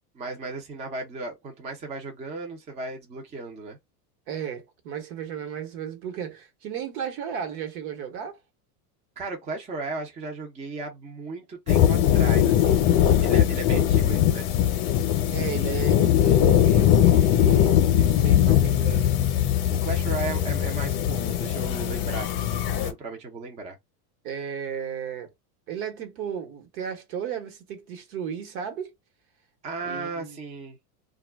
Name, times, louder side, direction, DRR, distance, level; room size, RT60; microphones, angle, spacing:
voice 1, 0.2-3.8 9.2-12.9 13.2-14.5 19.7-23.8 29.6-30.8, right 3 dB, 15° right, 0.5 m, -35 dB
voice 2, 4.3-8.4 15.3-19.1 24.2-25.3 25.7-28.9 29.8-30.4, right 8 dB, 65° right, 1.2 m, -34 dB
sound 1, 11.7-22.9, left 10 dB, 45° left, 0.7 m, -21 dB
2.3 x 2.2 x 3.3 m
supercardioid pair, 130°, 46 cm